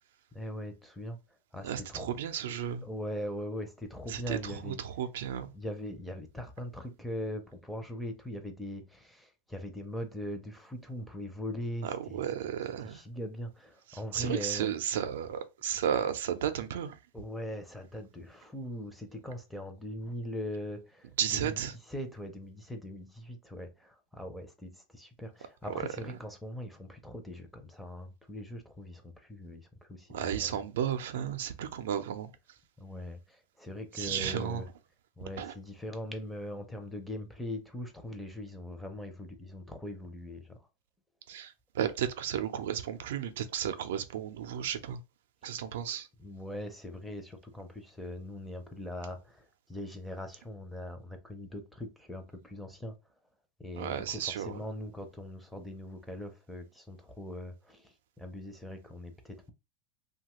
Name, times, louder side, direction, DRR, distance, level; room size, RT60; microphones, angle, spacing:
voice 1, 0.3-1.2 1.5-2.1 2.8-4.8 5.5-12.2 12.8-14.7 17.1-21.6 21.9-30.6 32.8-34.6 35.2-40.6 45.4-45.5 46.2-52.9 53.6-59.5, left 1 dB, ahead, 0.5 m, -41 dB
voice 2, 1.6-2.8 4.1-5.5 11.8-13.0 13.9-17.0 21.2-21.7 25.7-25.8 30.1-32.3 33.9-34.6 35.4-35.5 41.3-45.0 45.4-46.1 53.7-54.6, right 9 dB, 80° right, 0.5 m, -33 dB
2.8 x 2.3 x 2.9 m
supercardioid pair, 135°, 0 cm